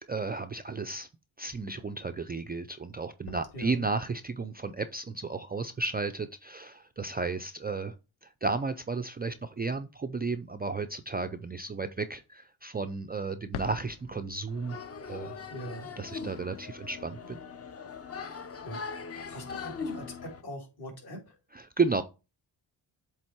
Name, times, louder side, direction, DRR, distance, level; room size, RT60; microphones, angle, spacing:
voice 1, 0.1-1.1 1.4-8.0 8.2-14.8 15.1-15.4 16.0-17.4 21.5-22.0, right 4 dB, 20° right, 0.4 m, -33 dB
sound 1, 2.9-5.6 13.3-18.1, left 10 dB, 90° left, 0.6 m, -48 dB
voice 2, 3.5-3.8 15.5-15.9 18.1-21.4, equal, 50° left, 2.7 m, -43 dB
sound 2, 14.5-20.4, left 5 dB, 30° left, 0.8 m, -40 dB
7.7 x 3.5 x 4.4 m
cardioid pair, 95°, 47 cm